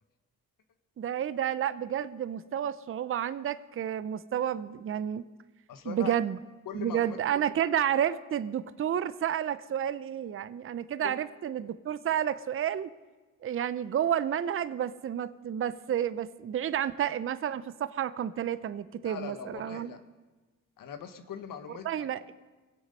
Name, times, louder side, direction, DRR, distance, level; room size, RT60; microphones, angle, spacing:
voice 1, 1.0-5.2 5.9-6.4 6.7-12.9 13.4-19.9 21.8-22.3, right 10 dB, 40° right, 15 dB, 0.5 m, -30 dB
voice 2, 5.7-6.1 6.6-7.2 11.0-11.1 19.0-20.0 20.8-22.1, left 8 dB, 70° left, 8 dB, 1.3 m, -41 dB
21.5 x 8.1 x 5.3 m, 1.3 s
cardioid pair, 75°, 35 cm